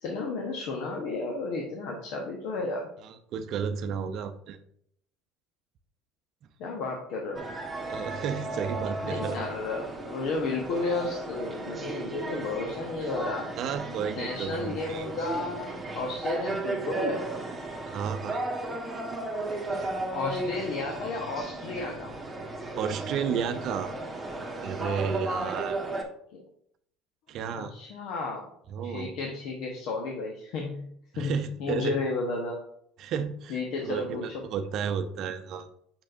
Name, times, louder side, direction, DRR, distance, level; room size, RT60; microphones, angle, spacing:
voice 1, 0.0-2.9 6.6-7.4 9.0-13.5 14.2-17.2 20.1-22.1 26.3-26.4 27.5-28.5 28.8-30.9 31.2-32.6 33.5-34.4, left 3 dB, 65° left, 0 dB, 1.1 m, -33 dB
voice 2, 3.0-4.6 7.8-9.5 13.6-15.1 17.9-18.4 19.7-19.9 22.8-23.9 24.6-25.8 27.3-27.7 28.7-29.2 31.1-31.9 33.0-35.7, right 7 dB, 55° right, 9 dB, 0.6 m, -32 dB
sound 1, 7.3-26.0, right 2 dB, 15° right, 1.5 m, -35 dB
6.5 x 6.0 x 2.6 m, 0.69 s
hypercardioid pair, 80°, 0 cm